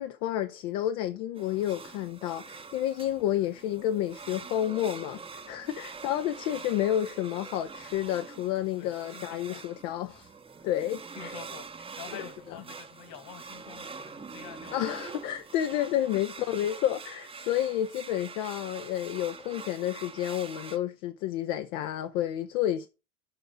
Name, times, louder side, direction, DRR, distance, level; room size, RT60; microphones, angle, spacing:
voice 1, 0.0-10.3 10.6-11.3 14.7-22.9, left 12 dB, 70° left, 0.9 m, -30 dB
sound 1, 1.3-20.8, right 5 dB, 10° right, 0.7 m, -45 dB
voice 2, 8.8-9.7 10.6-10.7 11.2-14.8, left 8 dB, 50° left, 2.0 m, -47 dB
7.8 x 4.9 x 6.2 m
supercardioid pair, 115°, 45 cm